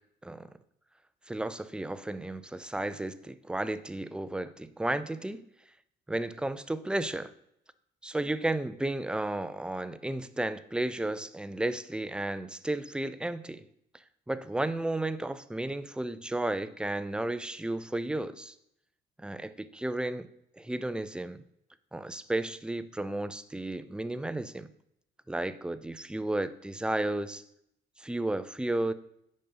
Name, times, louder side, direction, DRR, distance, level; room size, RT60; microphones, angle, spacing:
voice 1, 1.3-5.4 6.1-7.3 8.0-13.6 14.3-18.5 19.2-20.3 20.6-21.4 21.9-24.7 25.3-27.4 28.0-28.9, right 1 dB, 5° right, 14 dB, 0.5 m, -33 dB
8.5 x 5.4 x 5.4 m, 0.75 s
cardioid pair, 90°, 20 cm